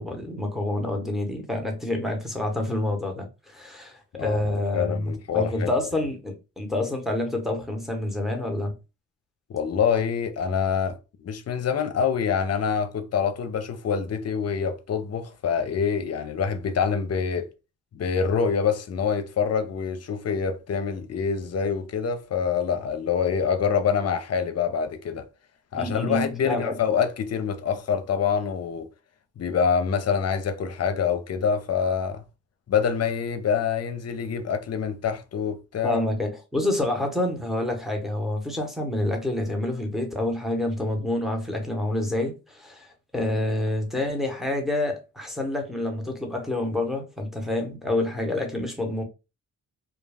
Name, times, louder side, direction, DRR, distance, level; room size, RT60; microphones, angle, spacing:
voice 1, 0.0-8.7 25.7-26.8 35.8-49.0, left 1 dB, ahead, 1.0 m, -28 dB
voice 2, 4.1-5.7 9.5-17.5 17.9-25.2 25.7-28.9 29.4-32.2 32.7-36.0, left 6 dB, 50° left, 0.6 m, -26 dB
2.3 x 2.2 x 3.3 m
cardioid pair, 65°, 32 cm